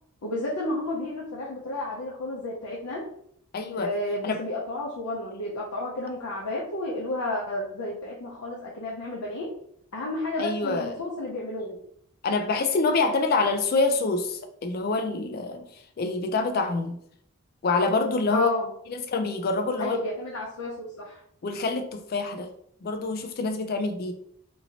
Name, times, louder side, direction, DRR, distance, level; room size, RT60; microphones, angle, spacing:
voice 1, 0.2-3.0 3.8-9.5 9.9-11.8 18.3-18.7 19.8-21.2, left 2 dB, 85° left, -4 dB, 0.6 m, -31 dB
voice 2, 3.5-3.9 4.2-4.4 10.4-10.9 12.2-15.6 16.0-17.0 17.6-18.5 19.1-19.9 21.4-22.5 22.8-24.1, left 3 dB, 45° left, 6 dB, 0.3 m, -26 dB
2.9 x 2.7 x 2.8 m, 0.68 s
head